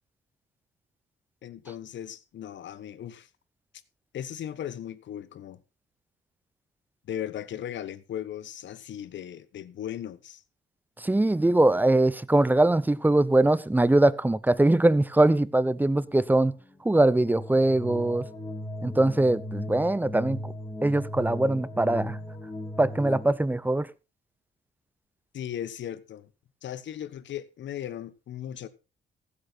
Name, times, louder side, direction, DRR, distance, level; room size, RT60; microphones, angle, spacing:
voice 1, 1.4-3.3 4.1-5.6 7.0-10.4 25.3-26.3 26.6-28.7, left 10 dB, 65° left, 1.2 m, -37 dB
voice 2, 11.0-16.5 16.8-18.2 18.8-20.5 20.8-22.2 22.8-23.9, right 2 dB, 10° right, 0.6 m, -22 dB
sound 1, 16.0-23.3, left 1 dB, 20° left, 3.6 m, -37 dB
15.5 x 8.9 x 4.1 m
cardioid pair, 90°, 20 cm